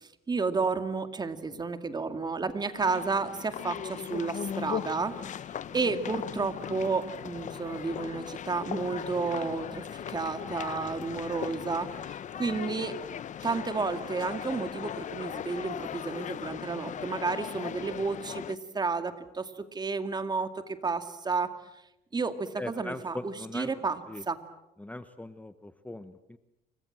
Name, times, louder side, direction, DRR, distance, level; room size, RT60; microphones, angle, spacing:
voice 1, 0.0-5.1 5.7-13.0 13.4-21.5 22.1-24.0 24.3-24.4, right 4 dB, 25° right, 9 dB, 2.3 m, -31 dB
sound 1, 2.7-18.6, left 9 dB, 45° left, 0.9 m, -38 dB
voice 2, 22.6-23.8 24.1-24.2 24.8-26.4, left 1 dB, 10° left, 11 dB, 1.1 m, -40 dB
29.0 x 24.5 x 7.6 m, 0.91 s
cardioid pair, 110°, 17 cm